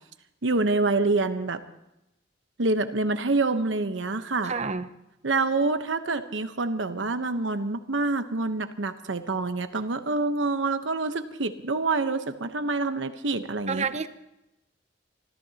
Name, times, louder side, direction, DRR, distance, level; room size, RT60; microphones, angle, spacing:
voice 1, 0.4-1.6 2.6-4.5 5.2-13.8, right 3 dB, 85° right, 9 dB, 1.0 m, -26 dB
voice 2, 4.4-4.9 13.7-14.1, right 5 dB, 35° right, 12 dB, 0.7 m, -29 dB
27.0 x 14.0 x 2.9 m, 0.88 s
head